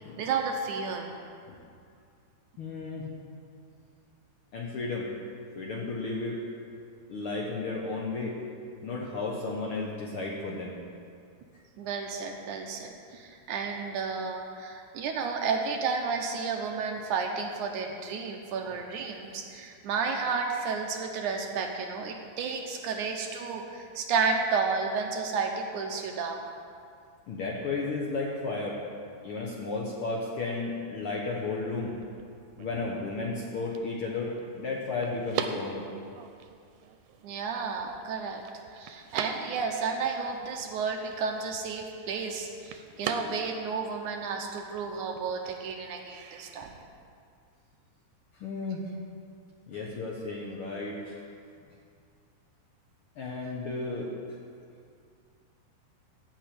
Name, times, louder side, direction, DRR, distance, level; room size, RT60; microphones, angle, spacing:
voice 1, 0.2-1.1 11.8-26.4 37.2-38.4 38.7-46.7, right 5 dB, 70° right, 2 dB, 2.0 m, -32 dB
voice 2, 2.6-3.1 4.5-5.1 5.5-6.4 7.1-8.4 8.8-10.8 27.3-28.8 29.2-32.0 32.6-35.9 48.4-48.8 49.7-51.2 53.2-54.1, left 3 dB, 85° left, -2 dB, 1.2 m, -33 dB
sound 1, 31.3-46.8, right 7 dB, 85° right, 2.5 m, -42 dB
13.0 x 6.3 x 8.5 m, 2.3 s
omnidirectional pair, 4.1 m